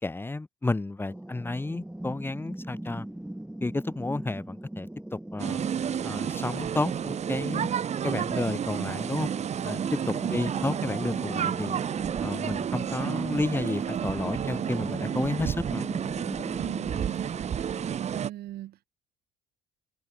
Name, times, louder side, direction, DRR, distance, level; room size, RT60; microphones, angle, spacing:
voice 1, 0.0-3.1 3.6-4.9 5.3-5.6 6.0-7.7 8.0-9.3 9.6-11.8 12.2-15.9, left 2 dB, 15° left, 1.4 m, -31 dB
sound 1, 1.1-18.0, right 1 dB, 5° right, 0.8 m, -41 dB
sound 2, 5.4-18.3, right 8 dB, 40° right, 1.1 m, -31 dB
voice 2, 10.2-10.6 16.6-17.8 18.1-18.9, right 14 dB, 65° right, 1.3 m, -39 dB
cardioid pair, 110°, 17 cm